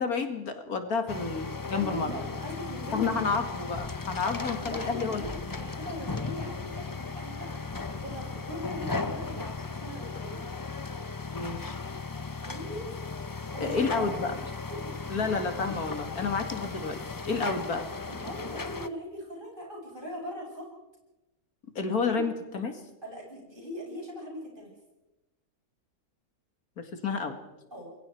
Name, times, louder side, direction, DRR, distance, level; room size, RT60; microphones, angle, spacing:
voice 1, 0.0-2.1 2.9-5.3 11.3-11.8 13.6-14.4 15.1-17.0 17.3-17.9 21.8-22.8 26.8-27.4, left 4 dB, 80° left, 6 dB, 2.6 m, -30 dB
sound 1, 1.1-18.9, left 4 dB, 30° left, 0.4 m, -36 dB
voice 2, 1.7-3.4 4.2-7.6 7.9-10.4 12.5-12.9 13.5-14.1 14.7-15.2 18.1-20.7 22.1-22.2 23.0-24.7 27.7-27.9, equal, 35° right, -2 dB, 7.7 m, -40 dB
27.5 x 22.0 x 4.6 m, 0.99 s
omnidirectional pair, 1.6 m